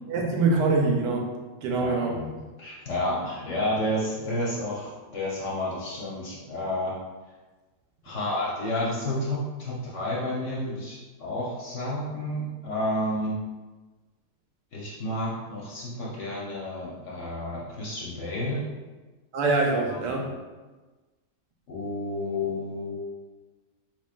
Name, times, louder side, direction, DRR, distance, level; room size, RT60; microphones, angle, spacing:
voice 1, 0.1-1.3 1.6-2.2 19.3-20.3, right 3 dB, 85° right, 1 dB, 1.3 m, -24 dB
voice 2, 1.7-2.3 2.6-6.9 8.0-13.4 14.7-18.6 19.9-20.2 21.7-23.0, left 1 dB, 55° left, -5 dB, 1.0 m, -31 dB
4.3 x 3.1 x 2.4 m, 1.2 s
omnidirectional pair, 1.8 m